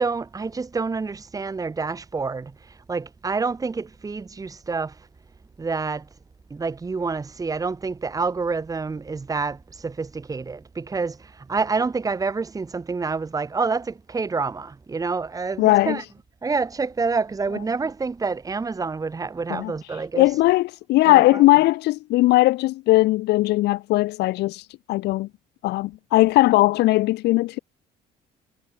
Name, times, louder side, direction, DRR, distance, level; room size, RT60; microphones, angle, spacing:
voice 1, 0.0-2.5 2.9-4.9 5.6-6.1 6.5-16.0 16.4-20.3 21.0-21.4, right 4 dB, 20° right, 1.6 m, -27 dB
voice 2, 15.6-16.0 19.5-19.7 20.1-24.6 24.9-25.3 25.6-27.6, left 18 dB, 80° left, 1.2 m, -19 dB
cardioid pair, 110°, 17 cm